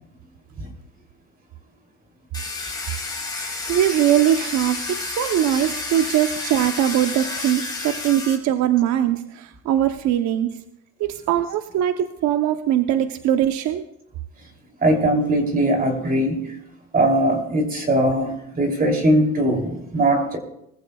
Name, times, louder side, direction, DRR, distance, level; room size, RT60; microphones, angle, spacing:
Domestic sounds home sounds, 2.3-8.3, left 3 dB, 10° left, 3.8 m, -30 dB
voice 1, 3.7-10.5 11.0-13.9, right 11 dB, 60° right, 8 dB, 0.9 m, -21 dB
voice 2, 14.8-16.5 16.9-20.4, right 1 dB, 25° right, 3 dB, 3.0 m, -20 dB
22.0 x 14.5 x 2.3 m, 0.80 s
cardioid pair, 110°, 32 cm